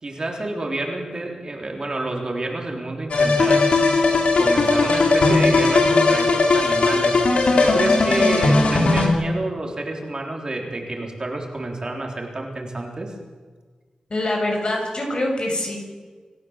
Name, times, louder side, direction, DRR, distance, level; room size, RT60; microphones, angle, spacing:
voice 1, 0.0-3.7 4.4-7.2 7.6-13.1, right 2 dB, 40° right, 1 dB, 3.6 m, -29 dB
sound 1, 3.1-9.1, left 3 dB, 75° left, 3.3 m, -18 dB
voice 2, 14.1-15.8, left 1 dB, 50° left, 1 dB, 6.7 m, -24 dB
27.0 x 15.0 x 7.3 m, 1.5 s
wide cardioid pair, 100°, 2 cm